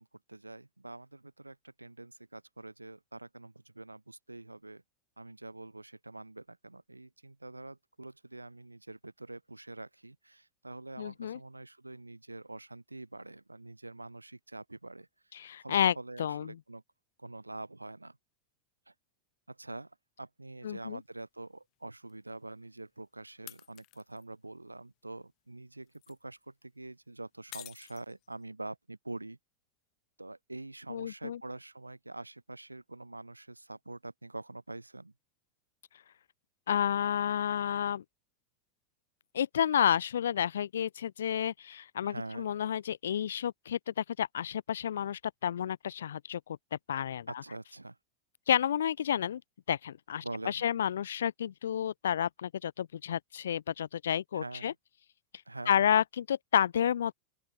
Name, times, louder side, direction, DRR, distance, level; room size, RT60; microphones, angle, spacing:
voice 1, 0.0-4.8 5.2-15.1 15.6-16.8 17.2-18.2 18.9-19.0 19.5-29.4 30.2-35.1 42.0-42.5 47.3-48.0 50.2-50.6 54.3-54.7 55.5-56.0, right 2 dB, 85° right, 0.9 m, -45 dB
voice 2, 11.0-11.4 15.4-16.5 20.6-21.0 30.9-31.4 36.7-38.0 39.3-46.6 46.9-47.3 48.5-49.4 49.7-54.7 55.7-57.1, left 9 dB, 70° left, 0.4 m, -30 dB
sound 1, 20.8-20.9 22.1-22.2 23.5-24.2 25.7-26.2 27.5-28.4, left 22 dB, 45° left, 2.0 m, -49 dB
open air
figure-of-eight pair, 90°, 0 cm